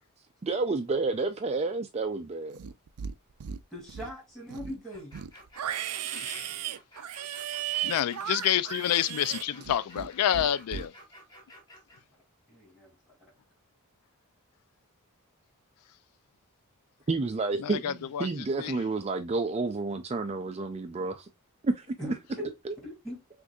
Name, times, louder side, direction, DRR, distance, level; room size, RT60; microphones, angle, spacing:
voice 1, 0.4-2.6 17.1-21.3 21.6-22.1 22.6-22.7, right 3 dB, 30° right, 0.4 m, -30 dB
Livestock farm animals working animals, 2.5-3.1 3.4-4.1 4.5-10.1 10.3-10.9, right 10 dB, 85° right, 0.4 m, -35 dB
voice 2, 3.7-5.1 12.5-13.3 22.0-22.5 22.8-23.2, equal, ahead, 2.6 m, -40 dB
sound 1, 4.9-12.0, equal, 20° left, 1.7 m, -53 dB
voice 3, 6.0-6.5 7.8-10.9 17.6-18.3 18.6-18.7, left 10 dB, 85° left, 0.3 m, -28 dB
6.2 x 2.6 x 2.3 m
head